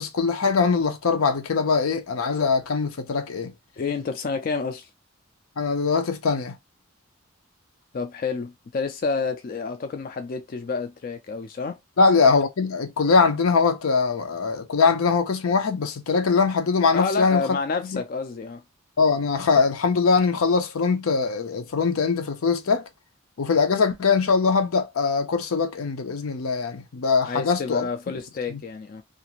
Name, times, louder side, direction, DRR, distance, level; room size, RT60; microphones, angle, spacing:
voice 1, 0.0-3.5 5.6-6.6 12.0-17.6 17.8-18.0 19.0-22.9 23.4-27.9 28.5-28.6, left 4 dB, 90° left, 0.6 m, -22 dB
voice 2, 3.8-4.9 7.9-11.8 16.9-18.6 27.2-29.0, left 4 dB, 45° left, 0.3 m, -29 dB
2.5 x 2.4 x 2.9 m
head